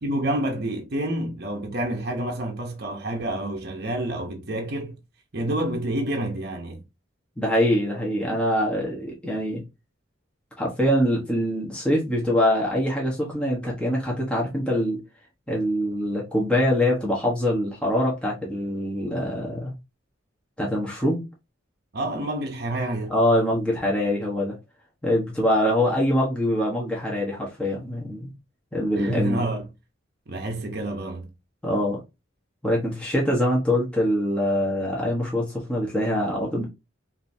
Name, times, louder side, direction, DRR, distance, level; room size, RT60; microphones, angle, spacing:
voice 1, 0.0-5.0 5.3-6.8 21.9-23.1 29.0-29.7 30.3-31.3, right 1 dB, 50° right, 0.9 m, -28 dB
voice 2, 7.4-9.6 10.6-15.0 15.5-19.7 20.6-21.2 23.1-24.6 25.0-28.3 28.7-29.4 31.6-32.0 32.6-36.6, left 1 dB, 5° left, 1.2 m, -24 dB
5.3 x 2.8 x 2.7 m
head